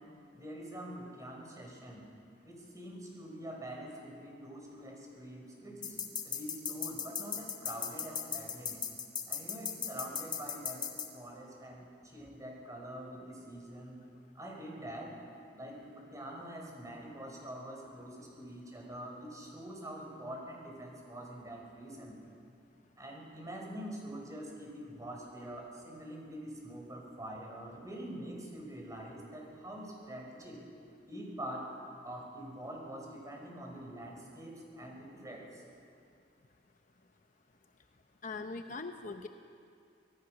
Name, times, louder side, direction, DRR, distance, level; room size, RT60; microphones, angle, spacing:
voice 1, 0.3-2.0 2.4-6.0 6.2-8.8 9.3-14.0 14.3-15.1 15.5-22.2 23.0-30.6 31.1-31.7 32.0-35.6, right 1 dB, 20° right, -1 dB, 5.0 m, -45 dB
sound 1, 5.8-11.1, left 7 dB, 25° left, 1.8 m, -37 dB
voice 2, 38.2-39.3, left 3 dB, 45° left, 6 dB, 0.9 m, -41 dB
24.5 x 17.0 x 6.4 m, 2.4 s
head